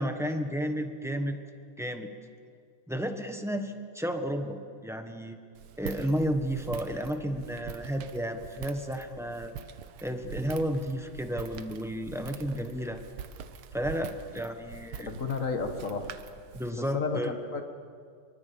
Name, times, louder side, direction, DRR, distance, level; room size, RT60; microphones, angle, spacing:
voice 1, 0.0-1.4 1.8-2.1 2.9-4.6 4.8-5.4 5.8-9.5 10.0-13.0 13.7-15.1 16.5-17.3, equal, ahead, 5 dB, 0.9 m, -32 dB
Walk footsteps, 5.5-16.7, right 8 dB, 75° right, 1.7 m, -44 dB
voice 2, 15.1-16.1 16.7-17.8, left 4 dB, 40° left, 6 dB, 1.8 m, -32 dB
24.5 x 23.5 x 7.0 m, 2.2 s
omnidirectional pair, 2.4 m